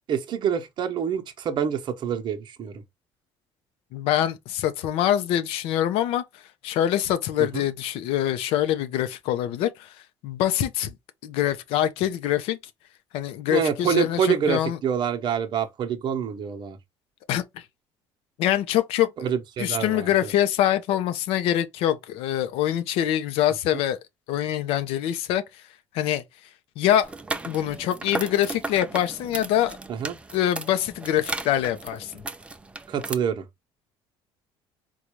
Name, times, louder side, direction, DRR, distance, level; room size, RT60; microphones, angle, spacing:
voice 1, 0.1-2.8 7.4-7.7 13.5-16.8 19.2-20.3 29.9-30.2 32.9-33.4, right 8 dB, 55° right, 0.8 m, -26 dB
voice 2, 3.9-10.0 10.2-10.9 11.2-12.6 13.1-14.8 17.3-17.7 18.4-19.1 19.6-24.0 24.3-25.6 25.9-26.2 26.8-27.1 27.4-29.8 30.3-32.1, left 11 dB, 90° left, 0.6 m, -24 dB
sound 1, 27.0-33.1, right 2 dB, 10° right, 0.4 m, -35 dB
3.9 x 2.3 x 3.0 m
cardioid pair, 120°, 9 cm